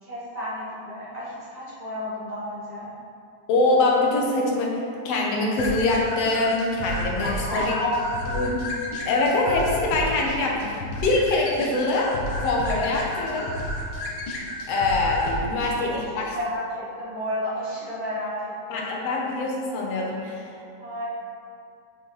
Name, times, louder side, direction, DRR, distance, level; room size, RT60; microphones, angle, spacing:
voice 1, 0.0-2.9 7.2-7.8 15.6-18.9 20.8-21.1, equal, 20° right, -10 dB, 1.3 m, -32 dB
voice 2, 3.5-4.8 5.1-7.7 8.3-8.6 9.1-12.1 12.4-13.5 14.7-16.3 18.7-20.5, left 2 dB, 65° left, -2 dB, 1.8 m, -24 dB
sound 1, 5.6-15.7, left 1 dB, 85° left, 1.0 m, -32 dB
8.1 x 6.6 x 3.3 m, 2.4 s
omnidirectional pair, 3.7 m